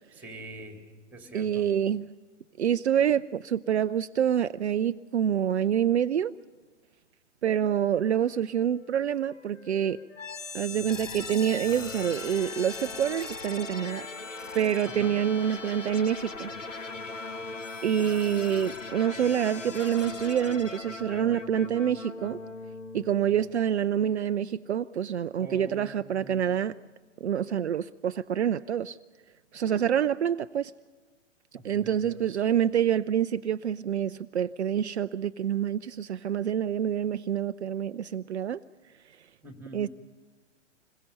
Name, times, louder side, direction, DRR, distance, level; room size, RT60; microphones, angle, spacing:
voice 1, 0.1-0.8 1.1-1.7 14.8-15.2 25.4-26.4 31.5-32.4 39.4-39.8, right 2 dB, 5° right, 4 dB, 3.2 m, -45 dB
voice 2, 1.3-2.1 2.6-6.3 7.4-10.0 10.5-14.1 14.5-16.5 17.8-22.4 22.9-26.7 27.2-29.0 29.5-30.7 31.6-38.6 39.7-39.9, right 9 dB, 65° right, 12 dB, 0.6 m, -27 dB
Wind instrument woodwind instrument, 7.9-11.9 12.2-16.4, left 3 dB, 70° left, 4.1 m, -56 dB
sound 1, 10.2-24.0, left 3 dB, 85° left, 1.1 m, -39 dB
26.5 x 22.0 x 5.5 m, 1.4 s
figure-of-eight pair, 115°, 37 cm